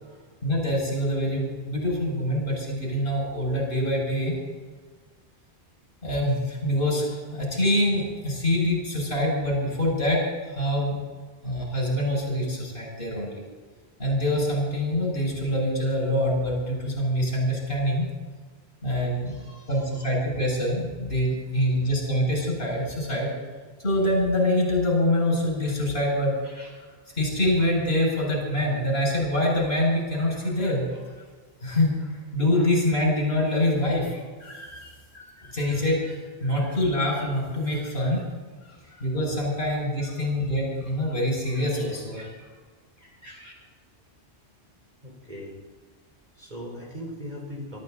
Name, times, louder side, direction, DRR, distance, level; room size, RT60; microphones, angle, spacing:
voice 1, 0.4-4.3 6.0-10.2 10.6-11.0 11.4-13.4 14.0-18.1 18.8-19.3 19.7-23.3 23.8-26.7 27.1-31.0 31.6-38.2 38.7-42.3 43.0-43.5, left 1 dB, 60° left, -2 dB, 7.1 m, -25 dB
voice 2, 19.3-20.1 38.8-39.0 39.7-39.8 40.2-40.3 45.0-45.6 46.4-47.8, equal, 40° right, -1 dB, 4.3 m, -40 dB
25.5 x 13.5 x 4.1 m, 1.4 s
omnidirectional pair, 1.1 m